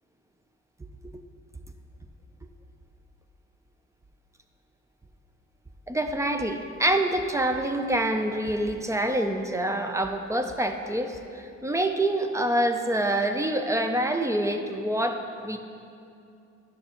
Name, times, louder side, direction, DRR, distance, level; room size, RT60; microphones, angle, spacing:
voice 1, 5.9-15.6, right 1 dB, 10° right, 6 dB, 0.5 m, -26 dB
11.0 x 6.4 x 2.9 m, 2.5 s
cardioid pair, 90°, 30 cm